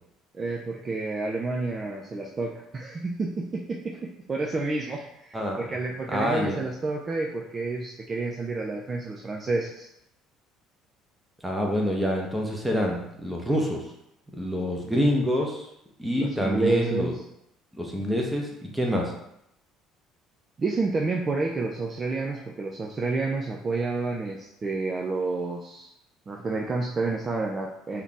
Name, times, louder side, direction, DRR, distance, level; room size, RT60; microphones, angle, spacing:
voice 1, 0.3-9.9 16.1-17.2 20.6-25.9 26.3-28.0, right 3 dB, 30° right, 0 dB, 0.5 m, -29 dB
voice 2, 6.1-6.6 11.4-13.8 14.3-15.7 16.0-17.1 17.7-19.1, equal, 5° right, -1 dB, 1.0 m, -26 dB
3.6 x 2.9 x 3.5 m, 0.80 s
figure-of-eight pair, 55°, 0 cm